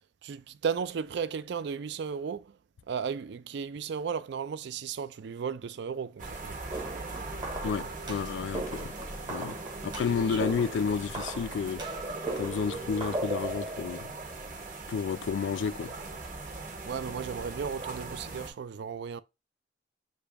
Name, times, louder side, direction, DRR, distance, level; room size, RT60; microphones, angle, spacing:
voice 1, 0.2-2.5 2.9-6.6 16.8-19.2, right 6 dB, 65° right, 0.4 m, -35 dB
sound 1, 6.2-18.5, right 3 dB, 50° right, 1.3 m, -40 dB
sound 2, 6.7-14.8, right 2 dB, 25° right, 0.9 m, -39 dB
voice 2, 7.6-8.9 9.3-9.6 9.8-11.8 12.4-14.1 14.9-15.9, left 6 dB, 80° left, 0.3 m, -31 dB
6.6 x 2.2 x 3.4 m
head